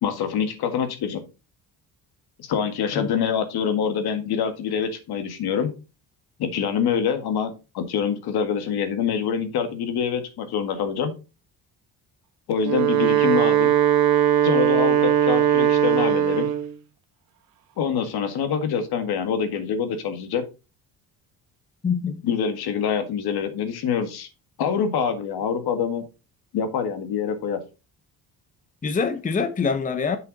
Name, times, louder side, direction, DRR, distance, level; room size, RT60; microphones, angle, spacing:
voice 1, 0.0-1.2 2.4-5.7 6.4-11.1 12.5-13.7 14.4-16.5 17.8-20.4 22.2-24.3 24.6-26.0 26.5-27.6, left 7 dB, 70° left, 1.9 m, -25 dB
Wind instrument woodwind instrument, 12.5-16.7, right 10 dB, 60° right, 1.2 m, -19 dB
voice 2, 21.8-22.2 28.8-30.2, left 5 dB, 20° left, 0.8 m, -25 dB
7.4 x 6.3 x 4.0 m
cardioid pair, 135°, 39 cm